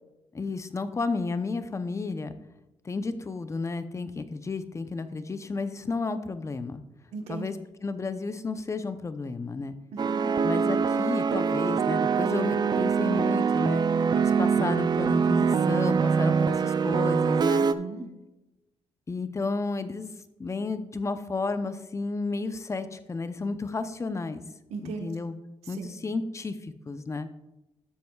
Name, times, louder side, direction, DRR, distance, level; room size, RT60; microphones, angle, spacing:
voice 1, 0.3-2.4 2.8-6.8 7.3-7.6 7.8-9.7 10.4-13.8 14.1-17.6 19.1-20.1 20.4-24.4 24.8-25.3 25.7-27.3, left 3 dB, 30° left, 11 dB, 0.7 m, -32 dB
voice 2, 7.1-7.5 9.9-10.3 17.6-18.0 24.7-25.1 25.7-25.9, right 5 dB, 80° right, 5 dB, 1.3 m, -37 dB
sound 1, 10.0-17.7, right 6 dB, 40° right, 0.5 m, -24 dB
12.5 x 7.6 x 2.4 m, 0.97 s
cardioid pair, 80°, 11 cm